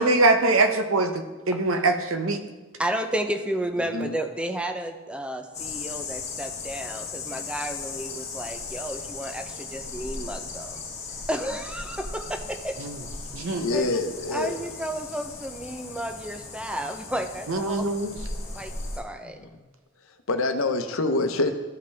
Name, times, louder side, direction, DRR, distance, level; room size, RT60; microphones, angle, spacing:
voice 1, 0.0-2.4 12.8-13.0 13.3-13.7 17.5-18.1, right 2 dB, 80° right, 7 dB, 0.8 m, -23 dB
voice 2, 2.8-10.8 11.3-12.8 13.5-13.9 14.3-17.9 18.5-19.4, right 1 dB, 5° right, 6 dB, 0.6 m, -32 dB
voice 3, 3.8-4.2 13.6-14.6 19.2-19.7 20.3-21.5, left 2 dB, 85° left, 7 dB, 0.8 m, -26 dB
sound 1, 5.5-19.0, left 4 dB, 35° left, 1.4 m, -37 dB
14.0 x 5.4 x 3.5 m, 1.3 s
head